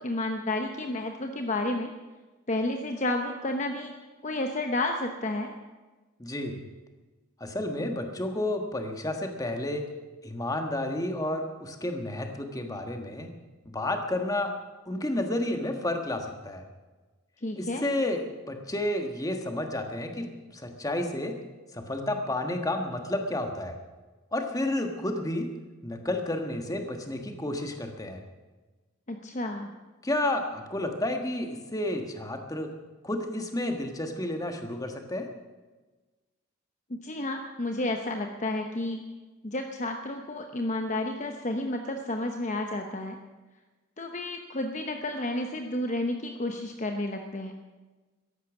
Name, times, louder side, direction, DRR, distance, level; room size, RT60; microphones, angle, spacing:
voice 1, 0.0-1.9 2.5-3.9 4.2-5.5 17.4-17.8 29.1-29.7 36.9-39.0 39.4-43.2 44.0-47.5, left 2 dB, 35° left, 4 dB, 0.9 m, -31 dB
voice 2, 6.2-6.6 7.4-9.9 10.2-13.3 13.6-14.5 14.8-16.6 17.5-21.3 21.7-23.8 24.3-25.5 25.8-28.2 30.0-32.7 33.0-35.3, left 1 dB, 15° left, 5 dB, 1.4 m, -31 dB
14.0 x 11.5 x 7.2 m, 1.2 s
head